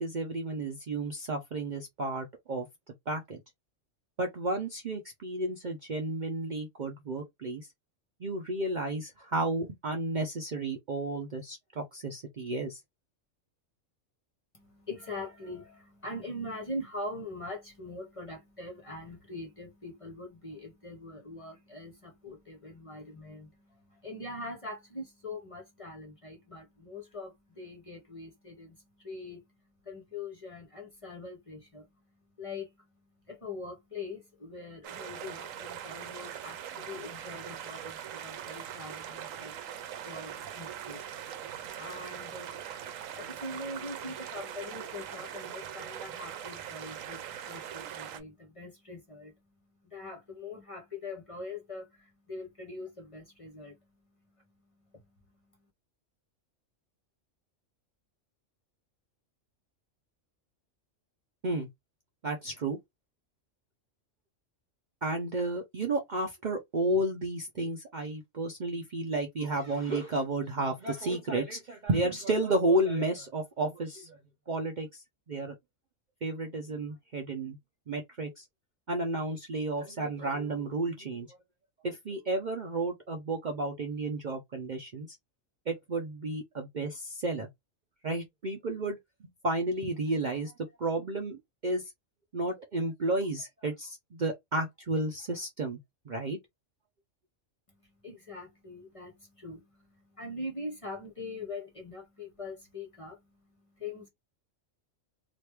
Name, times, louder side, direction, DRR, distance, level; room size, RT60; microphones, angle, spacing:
voice 1, 0.0-2.7 3.1-3.4 4.2-7.7 8.2-12.8 61.4-61.7 62.2-62.8 65.0-74.2 74.5-75.5 76.2-77.6 77.9-78.5 78.9-81.4 81.8-85.1 85.7-87.5 88.0-90.5 90.8-91.8 92.3-95.8 96.1-96.4, right 2 dB, 50° right, 0.6 m, -32 dB
voice 2, 14.5-55.7 97.7-104.1, left 2 dB, 30° left, 0.7 m, -43 dB
sound 1, 34.8-48.2, right 9 dB, 85° right, 1.0 m, -41 dB
3.0 x 2.5 x 3.3 m
omnidirectional pair, 1.3 m